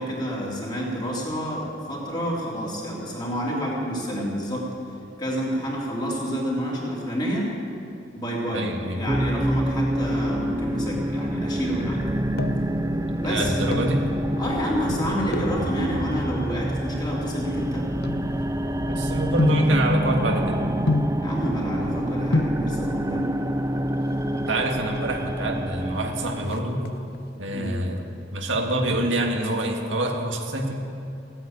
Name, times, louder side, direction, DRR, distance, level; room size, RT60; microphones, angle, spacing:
voice 1, 0.0-4.7 5.2-7.5 8.1-8.7 8.9-12.1 13.2-13.9 14.4-17.9 21.2-23.3 27.5-27.7, equal, 25° left, -4 dB, 3.3 m, -29 dB
voice 2, 8.5-9.0 13.2-14.0 18.8-20.7 24.3-26.9 27.4-28.0 28.3-30.7, right 1 dB, 80° right, 2 dB, 1.8 m, -26 dB
sound 1, 9.1-26.5, right 1 dB, 15° right, 0.6 m, -27 dB
sound 2, 12.0-12.8 13.5-14.0 15.3-15.6 16.4-18.8 19.4-19.8 20.9-21.3 22.0-22.1 22.3-22.7 23.8-24.3 24.6-24.7 24.9-25.1 25.5-25.9 26.2-27.2 27.6-28.1 28.4-29.6 29.9-30.0, left 2 dB, 55° left, 0.9 m, -28 dB
16.0 x 9.3 x 8.9 m, 2.6 s
head